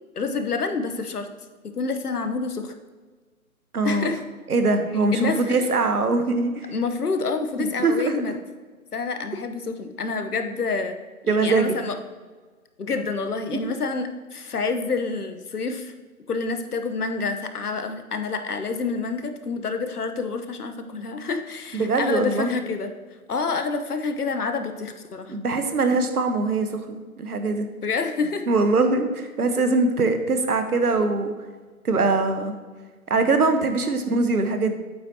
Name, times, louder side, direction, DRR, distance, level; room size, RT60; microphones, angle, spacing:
voice 1, 0.2-1.3 1.7-2.7 3.8-4.2 5.1-5.7 6.7-8.3 8.9-11.0 11.2-12.0 12.8-15.9 16.3-22.9 23.3-25.3 27.8-28.4, left 4 dB, 85° left, 8 dB, 1.1 m, -28 dB
voice 2, 3.7-4.1 4.5-6.7 7.6-8.2 11.3-11.7 13.6-13.7 21.7-22.5 25.3-27.7 28.5-31.3 31.8-32.5 33.1-34.8, right 3 dB, 80° right, 7 dB, 1.2 m, -22 dB
8.5 x 8.2 x 2.8 m, 1.4 s
figure-of-eight pair, 155°, 44 cm